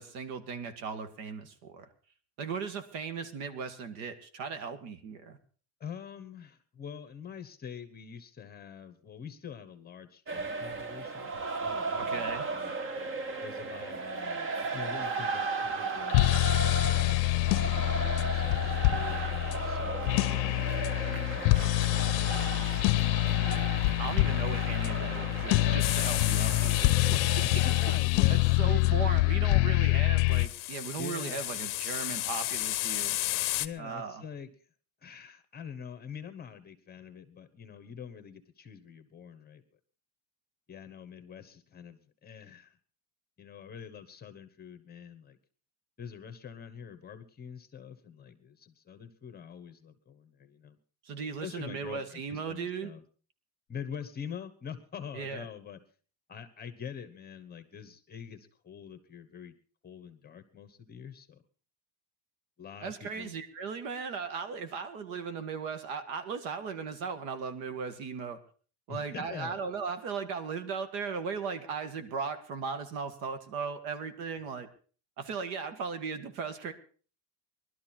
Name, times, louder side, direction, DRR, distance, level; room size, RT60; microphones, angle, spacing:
voice 1, 0.0-1.9 2.4-5.4 12.1-12.4 24.0-27.6 28.3-33.2 33.8-34.2 51.0-52.9 55.1-55.5 62.8-68.4 68.9-74.7 75.2-76.7, right 5 dB, 80° right, 9 dB, 2.0 m, -37 dB
voice 2, 5.8-11.3 11.6-12.7 13.4-17.2 17.7-22.5 23.2-23.8 27.4-28.9 31.0-31.5 33.6-34.5 35.0-39.6 40.7-42.8 43.4-45.4 46.0-50.8 51.4-53.0 53.7-55.8 56.3-59.5 59.8-61.4 62.6-63.3 68.9-69.6, left 7 dB, 20° left, 11 dB, 1.1 m, -45 dB
sound 1, 10.3-28.0, right 4 dB, 25° right, 0.8 m, -36 dB
sound 2, 16.1-30.5, left 23 dB, 75° left, 0.6 m, -26 dB
sound 3, 25.8-28.3 30.3-33.7, left 17 dB, 40° left, 0.8 m, -34 dB
19.5 x 12.5 x 4.4 m, 0.41 s
cardioid pair, 155°, 49 cm